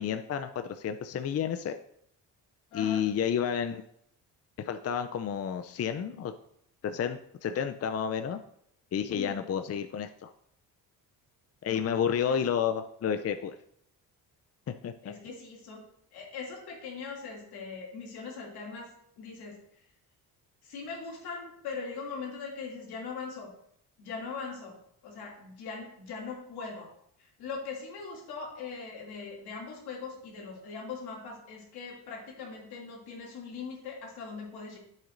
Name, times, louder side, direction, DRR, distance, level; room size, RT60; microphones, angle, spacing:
voice 1, 0.0-1.8 2.7-3.8 4.6-6.3 6.8-8.4 8.9-10.3 11.6-13.6 14.8-15.1, left 8 dB, 40° left, 8 dB, 0.5 m, -31 dB
voice 2, 2.7-3.1 9.1-9.4 11.6-11.8 12.3-12.4 15.0-18.9 19.2-19.6 20.6-23.5 24.0-26.9 27.2-34.8, left 5 dB, 85° left, -2 dB, 2.6 m, -41 dB
9.4 x 7.3 x 2.6 m, 0.70 s
cardioid pair, 75°, 38 cm